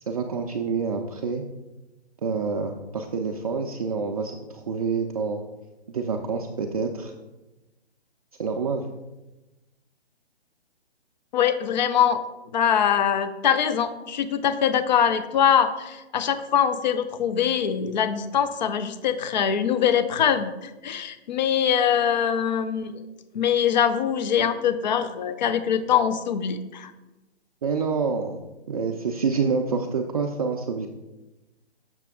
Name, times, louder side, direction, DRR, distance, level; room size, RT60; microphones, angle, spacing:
voice 1, 0.1-1.4 2.2-5.4 5.9-7.1 8.4-8.9 27.6-28.4 28.7-30.9, right 5 dB, 35° right, 2 dB, 0.4 m, -27 dB
voice 2, 11.3-12.2 12.5-23.0 23.3-26.9, left 8 dB, 45° left, 11 dB, 0.5 m, -23 dB
6.6 x 6.1 x 3.5 m, 1.1 s
hypercardioid pair, 150°, 32 cm